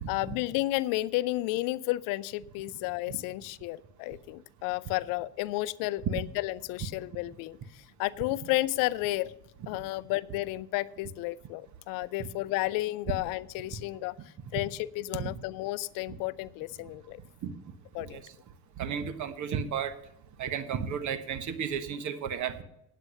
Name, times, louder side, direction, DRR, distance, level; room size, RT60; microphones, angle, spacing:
voice 1, 0.1-9.3 9.7-14.1 14.5-17.2 17.9-18.2, left 18 dB, 70° left, 18 dB, 0.6 m, -32 dB
voice 2, 18.8-20.0 20.4-22.6, right 7 dB, 55° right, 12 dB, 1.3 m, -33 dB
9.5 x 8.3 x 6.7 m, 0.82 s
supercardioid pair, 75°, 34 cm